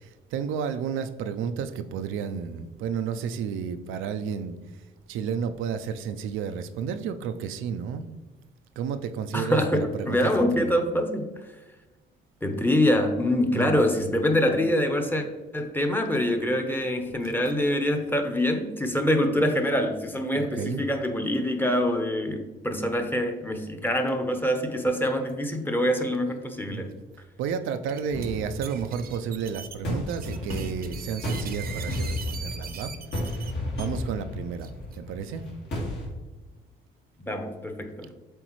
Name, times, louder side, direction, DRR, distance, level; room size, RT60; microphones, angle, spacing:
voice 1, 0.0-4.6 5.1-8.1 8.8-10.8 13.5-13.8 17.2-17.3 20.3-20.8 26.6-27.0 27.4-32.9 33.8-35.4, right 7 dB, 90° right, 9 dB, 0.4 m, -32 dB
voice 2, 9.3-11.3 12.4-15.2 15.5-26.9 37.2-38.1, left 1 dB, 10° left, 5 dB, 0.8 m, -25 dB
sound 1, 23.9-24.1 24.4-24.5 25.0-25.3 26.1-26.2 26.7-26.8 27.7-28.3 28.6-33.9 34.6-35.0, right 7 dB, 50° right, 0.7 m, -41 dB
sound 2, 28.1-36.1, left 1 dB, 65° left, 1.9 m, -33 dB
7.7 x 3.9 x 3.1 m, 1.1 s
cardioid pair, 90°, 20 cm